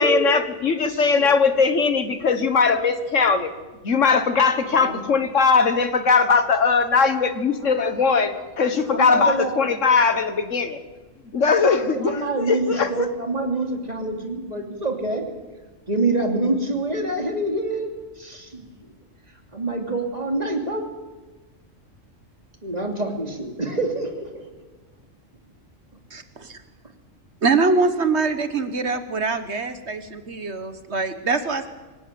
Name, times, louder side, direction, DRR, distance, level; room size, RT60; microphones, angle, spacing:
voice 1, 0.0-3.5 3.8-10.8 11.3-13.1, left 5 dB, 70° left, 10 dB, 1.8 m, -20 dB
voice 2, 0.9-1.4 4.6-5.0 7.6-8.3 8.9-9.8 11.7-15.2 15.9-17.9 18.2-18.7 19.5-20.8 22.6-24.4, right 2 dB, 30° right, 3 dB, 3.1 m, -26 dB
voice 3, 27.4-31.7, right 4 dB, 60° right, 10 dB, 1.5 m, -23 dB
25.0 x 17.5 x 7.7 m, 1.2 s
omnidirectional pair, 1.3 m